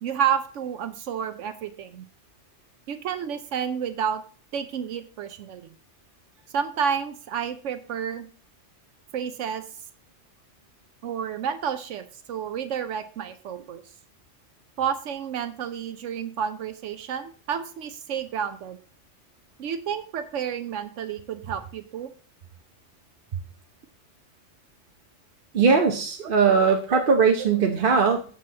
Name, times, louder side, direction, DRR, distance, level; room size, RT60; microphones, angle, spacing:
voice 1, 0.0-2.0 2.9-4.2 4.5-5.7 6.5-8.3 9.1-9.6 11.0-13.8 14.8-18.8 19.6-22.1 26.2-26.3 26.9-27.0, right 8 dB, 80° right, 10 dB, 1.0 m, -30 dB
voice 2, 25.5-28.2, right 5 dB, 50° right, 3 dB, 0.9 m, -20 dB
14.0 x 5.5 x 2.8 m, 0.40 s
omnidirectional pair, 1.3 m